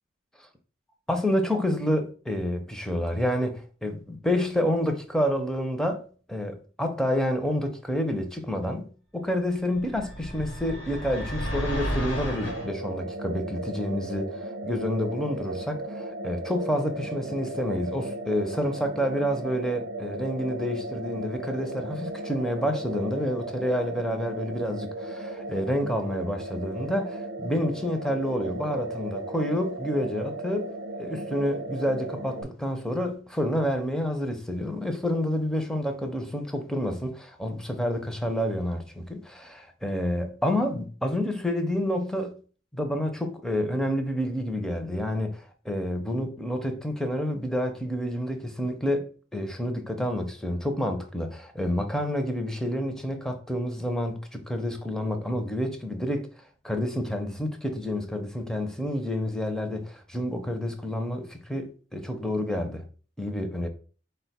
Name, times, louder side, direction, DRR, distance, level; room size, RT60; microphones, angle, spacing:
voice 1, 1.1-6.0 6.3-30.7 31.0-42.4 42.7-56.3 56.6-62.8 63.2-63.7, equal, 5° left, 0.4 m, -29 dB
sound 1, 9.8-12.7, equal, 70° left, 1.0 m, -32 dB
sound 2, 12.4-32.4, right 2 dB, 65° right, 0.7 m, -36 dB
4.3 x 2.2 x 4.1 m
head